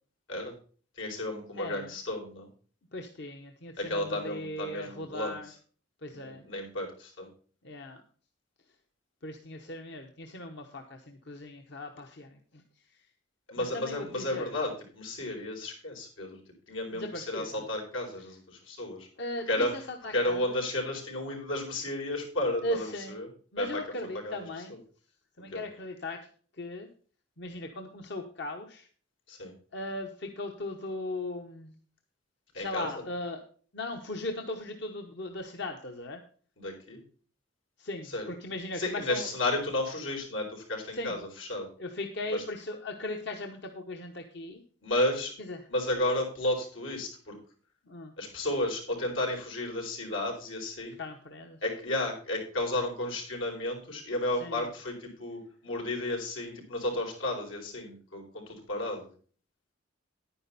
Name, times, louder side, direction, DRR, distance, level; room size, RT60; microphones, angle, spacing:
voice 1, 1.0-2.5 3.8-5.3 6.1-7.3 13.5-16.4 16.7-19.1 19.5-19.7 20.1-23.3 23.6-23.8 24.2-24.4 25.5-25.6 29.3-29.5 32.5-33.0 36.6-37.0 38.1-38.3 38.8-41.7 42.3-42.4 44.8-45.3 45.7-47.3 48.2-51.0 51.6-59.1, left 1 dB, 85° left, 0 dB, 4.5 m, -33 dB
voice 2, 1.6-1.9 2.9-5.5 6.0-6.4 7.6-8.0 9.2-12.6 13.6-14.5 16.9-17.5 18.2-18.3 19.2-20.6 22.6-23.2 23.5-24.8 25.4-26.2 26.6-26.9 27.4-28.9 29.7-31.7 32.5-33.4 33.7-36.2 37.8-39.3 40.9-41.2 41.8-44.6 45.4-45.7 47.9-48.1 51.0-51.6 54.3-54.7, left 1 dB, 60° left, 4 dB, 1.0 m, -38 dB
10.5 x 9.9 x 4.1 m, 0.42 s
head